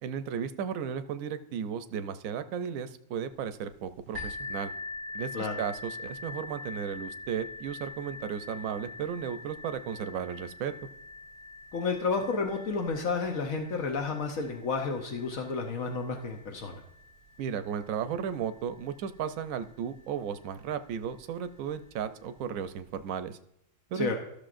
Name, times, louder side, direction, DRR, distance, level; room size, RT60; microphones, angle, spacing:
voice 1, 0.0-4.7 5.1-10.7 17.4-23.4 23.9-24.2, right 8 dB, 90° right, 10 dB, 1.0 m, -35 dB
sound 1, 4.1-19.7 20.5-20.6 21.1-21.2, left 2 dB, 50° left, 2.5 m, -44 dB
voice 2, 11.7-16.8 23.9-24.2, left 4 dB, 80° left, 3 dB, 1.3 m, -31 dB
14.0 x 6.5 x 2.5 m, 0.78 s
omnidirectional pair, 1.4 m